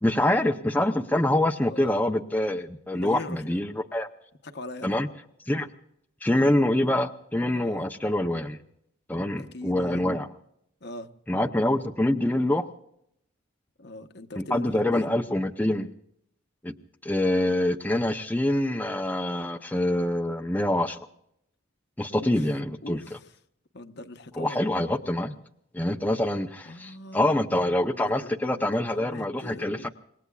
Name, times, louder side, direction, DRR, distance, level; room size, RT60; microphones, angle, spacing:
voice 1, 0.0-4.1 4.8-5.1 5.5-5.7 6.2-8.6 9.1-10.3 11.3-12.7 14.4-15.9 16.6-16.7 17.0-21.0 22.0-23.0 24.4-25.3 25.7-29.8, left 1 dB, 10° left, 0.6 m, -25 dB
voice 2, 1.7-2.0 2.9-3.6 4.4-5.0 7.5-7.8 9.4-10.0 10.8-11.1 13.8-15.1 22.2-22.5 22.8-23.3 23.7-24.7 26.7-29.9, left 2 dB, 55° left, 0.9 m, -41 dB
27.0 x 20.5 x 2.4 m
head